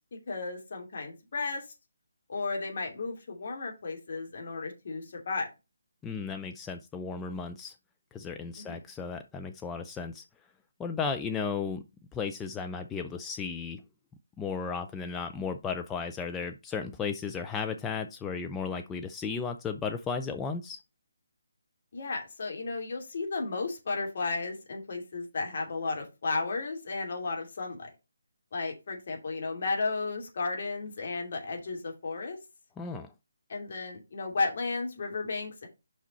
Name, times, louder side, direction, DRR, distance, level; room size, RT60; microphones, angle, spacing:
voice 1, 0.1-1.7 2.3-5.5 8.5-8.8 21.9-27.9 28.5-32.4 33.5-35.7, left 3 dB, 50° left, 2.8 m, -34 dB
voice 2, 6.0-7.7 8.1-10.2 10.8-11.8 12.1-13.8 14.4-20.8 32.8-33.1, left 5 dB, 10° left, 0.4 m, -34 dB
5.9 x 5.7 x 4.2 m
figure-of-eight pair, 145°, 0 cm